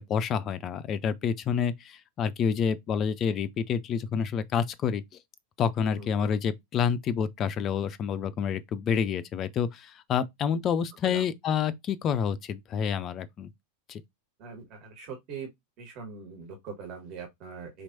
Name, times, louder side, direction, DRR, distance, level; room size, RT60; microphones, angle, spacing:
voice 1, 0.0-5.0 5.6-13.5 13.9-14.0, left 7 dB, 30° left, 0.4 m, -28 dB
voice 2, 5.9-6.3 11.0-11.3 14.4-15.5 15.8-17.8, right 5 dB, 40° right, 1.5 m, -42 dB
4.8 x 3.0 x 2.7 m
figure-of-eight pair, 90°, 0 cm